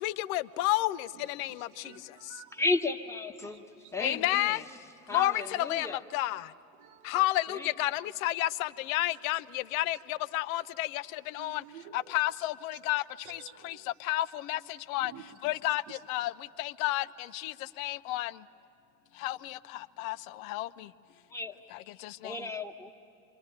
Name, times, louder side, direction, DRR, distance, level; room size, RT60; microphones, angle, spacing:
voice 1, 0.0-1.9 4.0-4.6 5.1-6.5 7.0-11.6 11.9-13.0 13.3-14.6 14.9-15.1 15.4-16.3 16.6-18.3 19.2-20.9 21.7-22.4, left 16 dB, 60° left, 17 dB, 0.7 m, -31 dB
voice 2, 1.2-2.6 3.4-3.9 6.8-7.2 11.4-12.0 13.2-13.8 15.0-15.5 15.9-16.0, right 9 dB, 65° right, 9 dB, 1.2 m, -51 dB
voice 3, 2.5-3.6 3.9-4.6 5.1-6.0 7.5-7.7 21.3-21.6 22.2-22.9, left 2 dB, 5° left, 4 dB, 1.4 m, -33 dB
26.5 x 23.5 x 8.8 m, 2.7 s
figure-of-eight pair, 70°, 46 cm